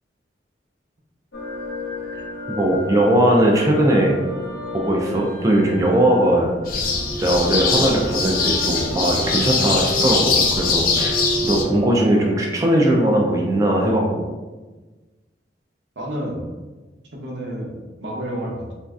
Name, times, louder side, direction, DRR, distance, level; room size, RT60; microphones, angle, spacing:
sound 1, 1.3-12.3, equal, 90° left, 0.7 m, -32 dB
voice 1, 2.5-4.2 4.7-6.5 7.2-14.2, right 1 dB, 20° right, -1 dB, 0.3 m, -19 dB
sound 2, 6.7-11.6, left 4 dB, 50° left, 0.4 m, -22 dB
voice 2, 16.0-16.4 17.1-18.7, equal, 85° right, -2 dB, 0.7 m, -30 dB
3.0 x 2.5 x 2.3 m, 1.2 s
head